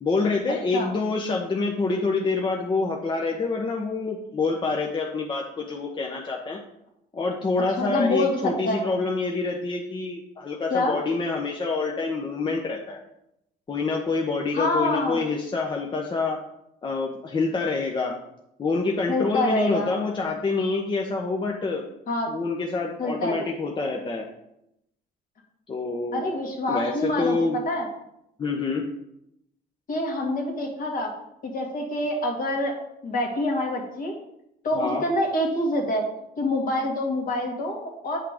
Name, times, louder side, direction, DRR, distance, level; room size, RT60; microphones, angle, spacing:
voice 1, 0.0-6.6 7.1-13.0 13.7-16.4 16.8-18.1 18.6-21.8 22.3-24.3 25.7-26.2 26.7-27.6 28.4-28.8 34.7-35.0, left 3 dB, 30° left, 1 dB, 0.9 m, -26 dB
voice 2, 7.8-8.8 10.7-11.0 14.5-15.2 19.1-19.9 22.1-22.3 23.0-23.4 26.1-27.9 29.9-31.1 31.4-32.7 33.0-34.1 34.6-36.0 36.4-38.2, left 1 dB, 55° left, 1 dB, 2.0 m, -26 dB
8.3 x 5.6 x 3.6 m, 0.81 s
cardioid pair, 110°, 17 cm